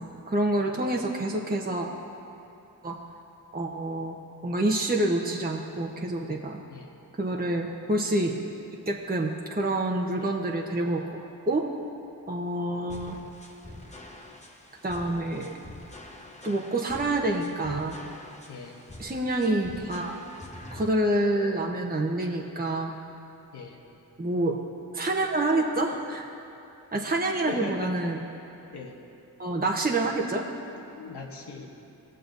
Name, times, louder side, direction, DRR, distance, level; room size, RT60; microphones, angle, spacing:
voice 1, 0.0-1.9 2.8-3.0 3.5-4.2 4.4-6.6 7.2-8.3 8.9-11.6 12.3-13.2 14.8-15.5 16.4-18.0 19.0-20.2 20.7-22.9 24.2-24.6 24.9-26.3 26.9-28.2 29.4-30.5, right 1 dB, 20° right, 0 dB, 1.0 m, -27 dB
sound 1, 12.9-20.9, left 1 dB, 15° left, 1.1 m, -46 dB
voice 2, 27.1-27.9 28.7-28.9 30.7-31.7, left 4 dB, 75° left, 0 dB, 1.2 m, -40 dB
19.5 x 6.6 x 2.7 m, 2.8 s
cardioid pair, 40°, 40 cm